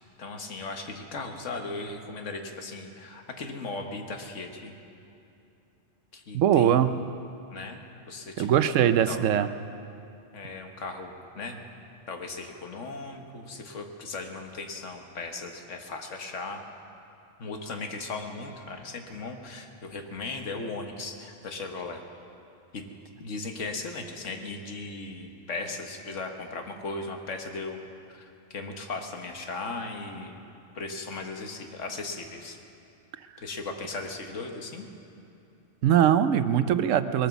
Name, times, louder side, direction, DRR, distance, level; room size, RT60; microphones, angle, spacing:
voice 1, 0.2-4.8 6.1-6.9 7.5-8.7 9.1-9.2 10.3-11.6 12.1-16.6 17.4-22.0 22.7-22.9 23.2-27.8 28.1-30.4 30.7-32.6 33.4-34.9, left 3 dB, 80° left, 4 dB, 1.6 m, -37 dB
voice 2, 6.3-7.0 8.4-9.5 35.8-37.3, right 9 dB, 90° right, 12 dB, 1.0 m, -21 dB
20.5 x 9.2 x 7.0 m, 2.7 s
omnidirectional pair, 1.3 m